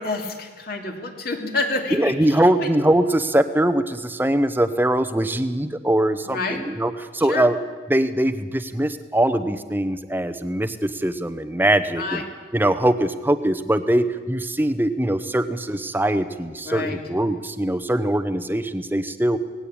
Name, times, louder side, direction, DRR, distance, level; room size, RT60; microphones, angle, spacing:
voice 1, 0.0-2.7 6.2-6.6 7.2-7.5 12.0-12.2 16.6-17.0, left 3 dB, 50° left, 3 dB, 2.6 m, -28 dB
voice 2, 1.9-7.6 7.9-12.2 12.5-19.4, right 1 dB, 10° right, 10 dB, 0.8 m, -22 dB
19.0 x 16.5 x 8.7 m, 1.5 s
head